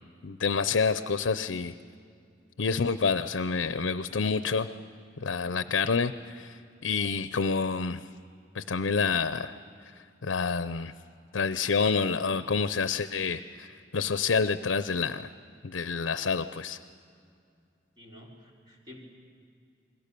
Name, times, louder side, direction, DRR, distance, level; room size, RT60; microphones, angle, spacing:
voice 1, 0.2-1.7 2.6-4.7 5.2-6.6 6.8-8.0 8.5-9.5 10.2-10.9 11.3-15.3 15.6-16.8, left 5 dB, 75° left, 12 dB, 0.6 m, -28 dB
voice 2, 18.0-19.0, left 1 dB, 25° right, -2 dB, 3.7 m, -50 dB
29.5 x 21.5 x 6.8 m, 2.4 s
head